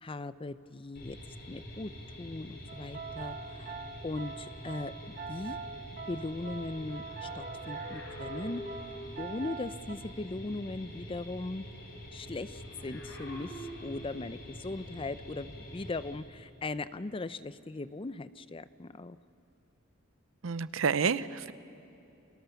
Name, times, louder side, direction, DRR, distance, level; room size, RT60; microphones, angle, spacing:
voice 1, 0.0-1.2 1.5-1.9 2.2-3.8 4.0-5.6 6.1-8.6 9.2-11.6 12.1-19.2, left 2 dB, 25° left, 0.5 m, -39 dB
sound 1, 0.9-16.1, equal, 55° left, 5.7 m, -46 dB
sound 2, 2.7-10.0, right 5 dB, 45° right, 1.2 m, -43 dB
sound 3, 6.6-9.3 12.5-14.4 15.3-15.5, left 1 dB, 70° left, 5.1 m, -47 dB
voice 2, 20.4-21.5, right 5 dB, 80° right, 0.6 m, -29 dB
28.5 x 24.0 x 7.0 m
head